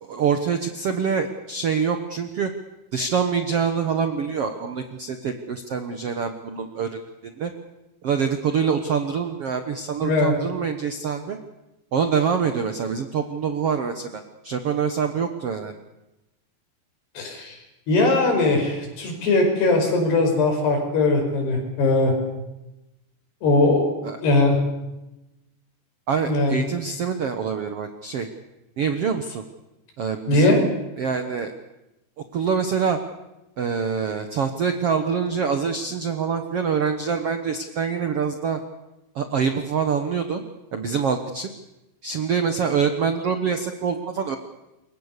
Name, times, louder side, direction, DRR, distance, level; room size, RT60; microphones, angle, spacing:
voice 1, 0.0-2.5 2.9-7.5 8.0-11.4 11.9-15.7 24.0-24.2 26.1-28.3 28.8-29.4 30.0-30.7 31.0-31.5 32.3-33.0 33.6-38.6 39.1-40.4 40.7-41.5 42.0-44.4, right 6 dB, 70° right, 7 dB, 1.4 m, -25 dB
voice 2, 10.0-10.3 17.2-17.6 17.9-22.1 23.4-23.9 24.2-24.6 26.3-26.6 30.3-30.6, left 2 dB, 85° left, 3 dB, 7.4 m, -20 dB
27.0 x 22.5 x 6.8 m, 0.97 s
omnidirectional pair, 4.6 m